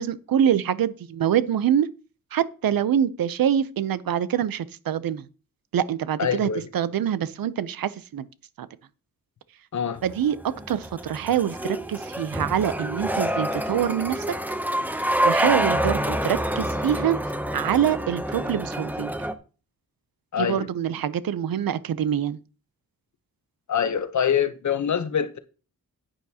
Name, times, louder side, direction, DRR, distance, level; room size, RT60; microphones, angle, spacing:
voice 1, 0.0-1.9 2.3-5.2 5.7-6.5 6.7-8.2 8.6-8.7 10.0-10.4 10.7-14.2 15.2-17.2 17.5-19.1 20.4-22.4, right 9 dB, 80° right, 0.6 m, -25 dB
voice 2, 6.2-6.7 9.7-10.0 20.3-20.7 23.7-25.4, left 8 dB, 55° left, 0.8 m, -25 dB
sound 1, 10.0-19.3, equal, 5° right, 0.6 m, -27 dB
10.5 x 8.9 x 2.8 m
wide cardioid pair, 150°, 34 cm